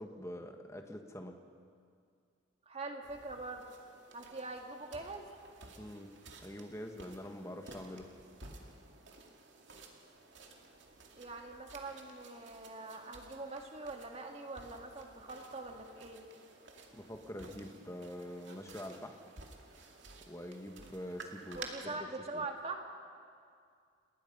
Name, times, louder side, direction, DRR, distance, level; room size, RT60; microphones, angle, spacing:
voice 1, 0.0-1.4 5.8-6.1 6.4-8.1 16.9-19.2 20.3-22.0 22.3-22.4, left 1 dB, 15° left, 4 dB, 1.5 m, -45 dB
voice 2, 2.7-3.6 4.1-5.3 11.2-16.2 21.5-22.8, right 3 dB, 30° right, 3 dB, 1.9 m, -43 dB
sound 1, 3.0-21.7, right 3 dB, 65° right, 2.4 m, -54 dB
29.5 x 20.0 x 5.5 m, 2.3 s
head